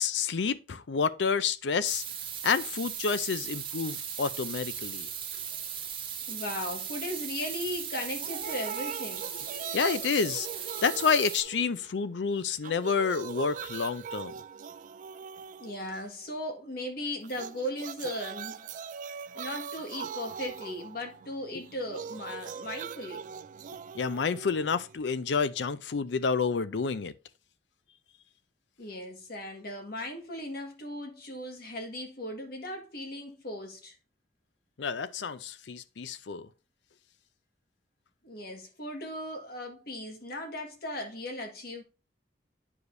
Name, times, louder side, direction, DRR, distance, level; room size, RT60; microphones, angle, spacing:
voice 1, 0.0-2.0 2.4-5.1 9.6-10.5 10.8-14.3 23.9-27.1 34.8-36.5, left 5 dB, 90° left, 0.5 m, -29 dB
sound 1, 1.8-11.4, right 8 dB, 30° right, 1.0 m, -38 dB
voice 2, 6.3-9.3 10.7-10.8 15.6-18.8 19.3-23.2 28.8-33.9 38.2-41.8, left 1 dB, 60° left, 1.6 m, -37 dB
sound 2, 8.2-12.2 12.5-16.3 17.2-25.2, right 7 dB, 45° right, 0.3 m, -41 dB
9.7 x 4.9 x 2.6 m
head